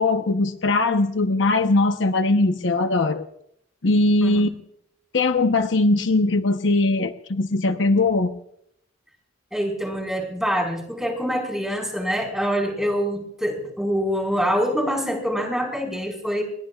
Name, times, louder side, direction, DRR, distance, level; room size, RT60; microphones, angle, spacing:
voice 1, 0.0-3.3 3.8-4.5 5.1-8.3, left 2 dB, 60° left, 7 dB, 0.9 m, -20 dB
voice 2, 9.5-16.4, equal, ahead, 3 dB, 4.6 m, -25 dB
28.5 x 21.0 x 2.4 m, 0.73 s
head